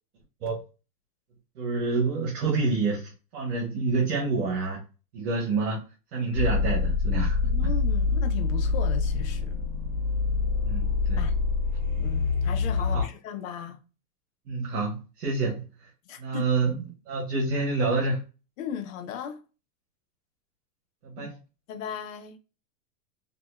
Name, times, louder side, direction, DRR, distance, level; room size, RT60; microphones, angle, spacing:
voice 1, 1.6-4.8 5.1-5.8 6.1-7.5 10.6-11.3 12.9-13.1 14.5-15.9 16.2-16.7 17.1-18.2 21.0-21.4, right 3 dB, 70° right, 1.2 m, -28 dB
sound 1, 6.3-13.0, left 4 dB, 45° right, 1.5 m, -26 dB
voice 2, 7.5-9.7 10.3-10.4 11.2-11.3 12.0-13.8 16.1-16.4 18.6-19.4 21.2-21.3 21.7-22.4, left 8 dB, 60° left, 0.7 m, -37 dB
2.7 x 2.7 x 2.2 m
supercardioid pair, 145°, 46 cm